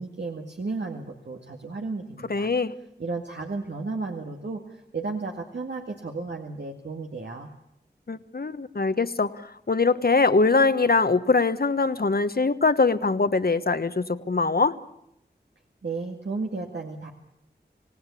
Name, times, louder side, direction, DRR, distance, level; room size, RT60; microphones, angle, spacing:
voice 1, 0.0-2.5 3.0-7.5 15.8-17.1, right 3 dB, 80° right, 2 dB, 2.0 m, -33 dB
voice 2, 2.3-2.7 8.1-9.4 9.7-14.7, left 3 dB, 60° left, 11 dB, 1.2 m, -22 dB
26.5 x 18.0 x 8.4 m, 0.80 s
wide cardioid pair, 55°, 18 cm